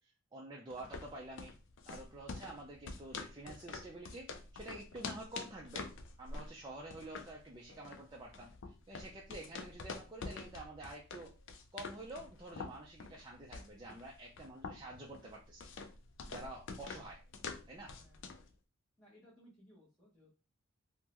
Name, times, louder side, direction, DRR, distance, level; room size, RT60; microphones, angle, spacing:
voice 1, 0.0-1.6 1.9-5.9 6.2-11.3 11.7-15.7 16.3-17.2 17.7-17.9, right 2 dB, 20° right, -2 dB, 0.4 m, -49 dB
sound 1, 0.7-18.5, left 4 dB, 60° left, 0.4 m, -47 dB
voice 2, 17.8-18.3 19.0-20.3, equal, ahead, -11 dB, 0.9 m, -63 dB
3.6 x 2.1 x 2.9 m, 0.33 s
head